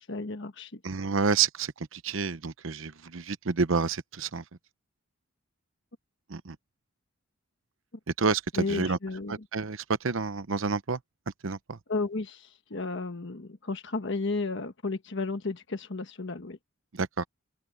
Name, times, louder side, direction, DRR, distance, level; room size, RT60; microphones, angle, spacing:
voice 1, 0.0-0.8 8.6-9.3 11.9-16.6, left 3 dB, 60° left, 1.3 m, -33 dB
voice 2, 0.8-4.4 6.3-6.6 8.2-9.0 9.3-11.0 11.4-11.8 16.9-17.2, right 5 dB, 70° right, 0.8 m, -29 dB
open air
head